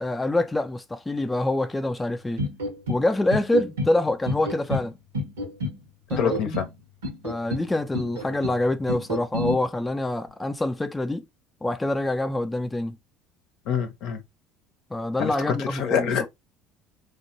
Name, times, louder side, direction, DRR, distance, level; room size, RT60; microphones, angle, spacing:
voice 1, 0.0-2.4 2.9-4.9 6.1-6.6 7.2-11.2 11.6-13.0 14.9-16.3, left 2 dB, 15° left, 0.4 m, -26 dB
sound 1, 2.4-3.0 3.3-3.9 4.3-4.9 5.1-5.8 6.1-6.7 7.0-7.7 7.9-8.6 8.9-9.6, left 1 dB, 85° right, 0.8 m, -29 dB
voice 2, 6.2-6.7 13.7-14.2 15.2-16.3, left 7 dB, 65° left, 0.7 m, -26 dB
3.4 x 2.1 x 2.8 m
hypercardioid pair, 70°, 0 cm